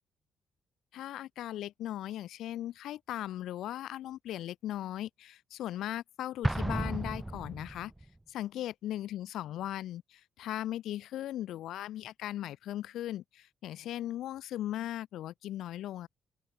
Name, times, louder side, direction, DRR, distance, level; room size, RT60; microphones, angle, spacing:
voice 1, 0.9-7.9 8.3-16.1, left 13 dB, 80° left, 2.9 m, -38 dB
Explosion, 6.4-8.1, right 1 dB, 10° right, 0.8 m, -33 dB
open air
cardioid pair, 90°, 0 cm